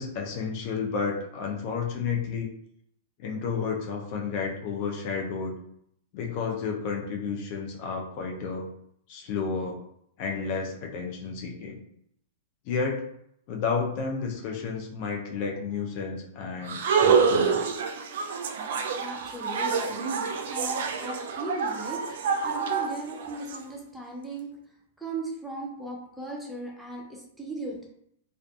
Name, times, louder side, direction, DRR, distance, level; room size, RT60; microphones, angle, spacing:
voice 1, 0.0-2.5 3.2-5.6 6.1-8.7 9.1-9.8 10.2-11.8 12.6-13.0 13.5-17.8, left 5 dB, 50° left, 0 dB, 0.6 m, -31 dB
sound 1, 16.7-23.6, right 6 dB, 70° right, 0.3 m, -27 dB
voice 2, 19.0-24.5 25.0-27.9, right 2 dB, ahead, -2 dB, 0.5 m, -38 dB
2.4 x 2.4 x 2.4 m, 0.73 s
hypercardioid pair, 130°, 0 cm